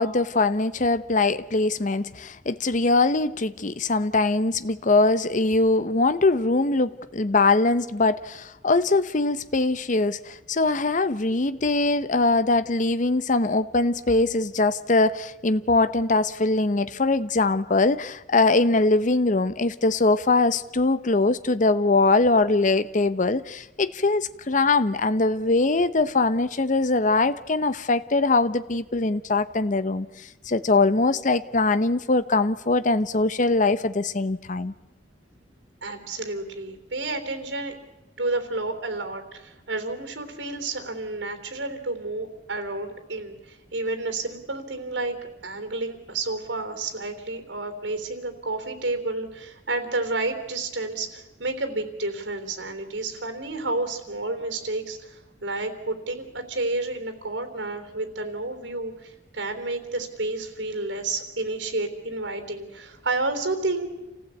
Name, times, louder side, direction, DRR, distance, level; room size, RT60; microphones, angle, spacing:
voice 1, 0.0-34.7, left 3 dB, 45° left, 0.8 m, -22 dB
voice 2, 35.8-37.8 38.2-45.2 45.4-63.8, right 2 dB, 80° right, 3.5 m, -30 dB
27.5 x 15.5 x 8.4 m
head